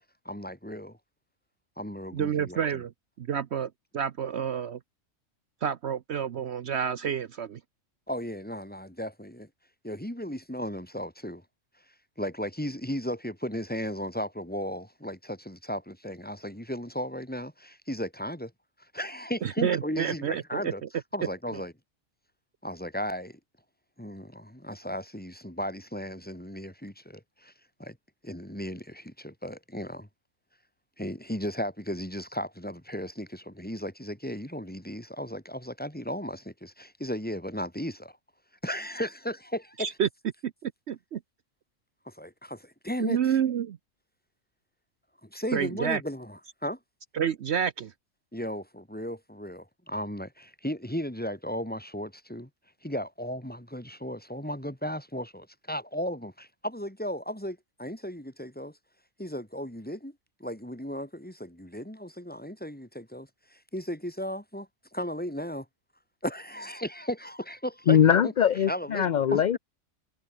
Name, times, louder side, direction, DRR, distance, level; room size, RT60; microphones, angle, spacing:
voice 1, 0.2-1.0 1.8-2.8 8.1-9.5 9.8-11.4 12.2-18.5 18.9-20.8 21.1-21.7 22.6-23.4 24.0-27.5 27.8-28.0 28.2-30.1 31.0-38.1 38.6-39.9 42.0-43.3 45.2-46.8 48.3-52.5 52.8-58.8 59.2-60.1 60.4-65.6 66.2-68.0 68.2-68.3 68.7-69.4, equal, 5° left, 3.3 m, -35 dB
voice 2, 2.1-2.9 3.2-4.8 5.6-7.6 19.4-20.7 21.5-21.6 39.8-40.1 40.4-41.2 43.0-43.8 45.5-46.0 47.1-47.9, right 8 dB, 60° right, 1.0 m, -29 dB
voice 3, 67.9-69.6, left 8 dB, 55° left, 0.5 m, -21 dB
omnidirectional pair, 1.4 m